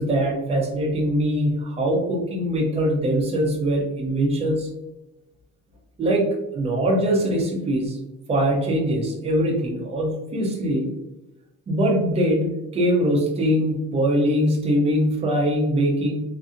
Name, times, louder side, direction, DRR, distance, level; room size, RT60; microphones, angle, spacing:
voice 1, 0.0-4.7 6.0-6.3 6.5-8.0 8.3-10.9 11.7-16.2, equal, 20° right, 0 dB, 0.4 m, -22 dB
2.5 x 2.5 x 2.5 m, 0.94 s
cardioid pair, 175°, 31 cm